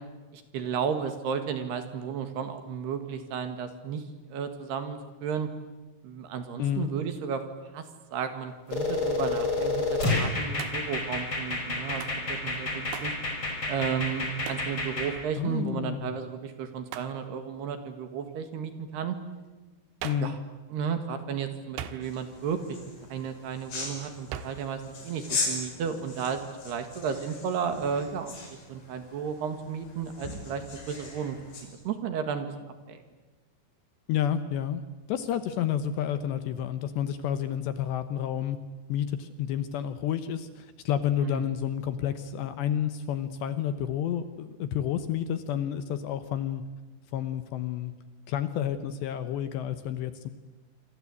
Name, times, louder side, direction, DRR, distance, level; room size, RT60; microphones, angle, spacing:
voice 1, 0.3-4.0 4.3-5.5 6.0-7.4 7.7-7.8 8.1-13.1 13.7-19.2 20.2-20.4 20.7-22.8 23.1-28.3 28.7-31.4 31.9-32.5 32.9-33.0 41.2-41.5, right 7 dB, 60° right, 8 dB, 3.5 m, -33 dB
sound 1, 8.7-15.1, left 3 dB, 25° left, 5.4 m, -29 dB
Hands, 10.6-11.0 12.0-12.2 12.9-13.2 14.5-14.7 16.9-17.2 20.0-20.4 21.8-22.3 24.3-24.7, right 10 dB, 80° right, 3.8 m, -39 dB
voice 2, 15.4-16.2 20.0-20.4 34.1-34.8 35.1-38.6 38.9-46.6 47.1-47.9 48.3-50.3, left 10 dB, 75° left, 11 dB, 2.8 m, -30 dB
sound 2, 22.0-31.7, left 3 dB, 45° left, 7.5 m, -39 dB
27.0 x 26.5 x 8.5 m, 1.2 s
omnidirectional pair, 5.8 m